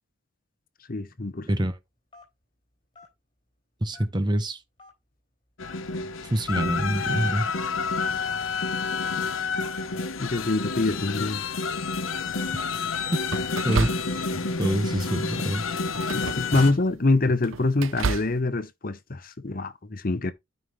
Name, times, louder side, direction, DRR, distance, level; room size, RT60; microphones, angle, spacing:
voice 1, 0.9-1.5 10.2-11.5 16.1-20.3, left 2 dB, 45° left, 0.8 m, -25 dB
voice 2, 1.5-1.8 3.8-4.6 6.2-7.5 12.5-12.7 13.6-15.6, right 1 dB, 20° right, 0.9 m, -26 dB
Telephone, 2.1-2.4 2.9-3.1 3.9-4.3 4.8-4.9 5.6-5.8 6.5-6.6 7.3-7.4 8.1-8.2 8.9-9.1 9.8-10.0, left 2 dB, 25° left, 3.6 m, -51 dB
sound 1, 5.6-16.7, left 4 dB, 85° left, 0.9 m, -29 dB
sound 2, 11.9-12.4 13.3-14.5 14.9-15.2 15.9-16.9 17.3-18.4, right 5 dB, 85° right, 0.6 m, -32 dB
13.0 x 5.5 x 3.1 m
head